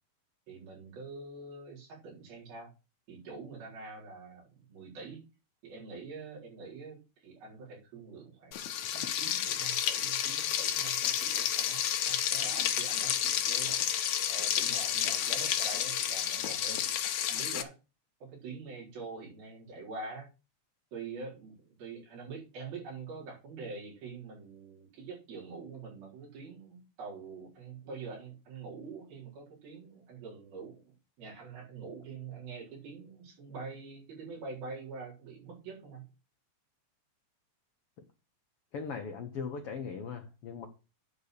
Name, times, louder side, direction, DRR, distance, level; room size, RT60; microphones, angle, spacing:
voice 1, 0.5-2.7 3.1-5.2 5.6-8.6 8.9-13.9 14.3-16.9 17.3-17.7 18.2-20.3 20.9-36.0, right 4 dB, 80° right, -4 dB, 5.9 m, -45 dB
Frying (food), 8.5-17.6, left 10 dB, 70° left, 1.8 m, -31 dB
voice 2, 38.7-40.7, left 5 dB, 85° left, 4 dB, 1.3 m, -39 dB
10.0 x 4.2 x 6.7 m, 0.30 s
omnidirectional pair, 4.2 m